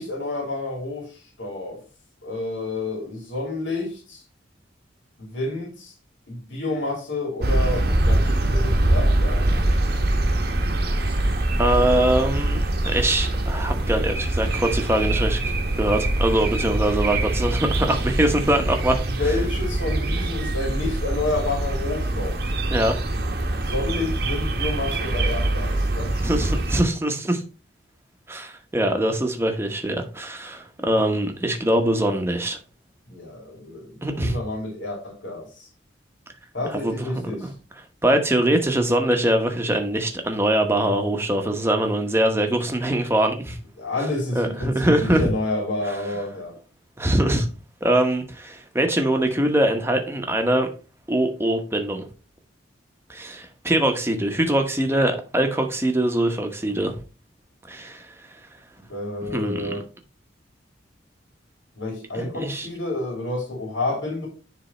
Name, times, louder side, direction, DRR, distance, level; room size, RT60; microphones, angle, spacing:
voice 1, 0.0-1.8 2.2-4.2 5.2-5.9 6.3-9.6 18.9-22.4 23.5-26.5 33.1-35.7 36.5-37.5 43.8-46.6 58.9-59.8 61.7-64.3, left 2 dB, 85° left, 2.8 m, -29 dB
sound 1, 7.4-26.8, right 1 dB, 55° right, 1.1 m, -23 dB
voice 2, 11.6-12.6 12.8-19.0 22.7-23.0 26.2-27.4 28.3-32.6 34.0-34.3 36.7-37.1 37.4-37.5 38.0-43.6 44.3-45.3 47.0-47.5 47.8-50.7 51.1-52.0 53.1-57.0 57.7-58.1 59.3-59.7 62.1-62.7, right 1 dB, 15° right, 1.0 m, -22 dB
10.0 x 3.4 x 4.2 m
head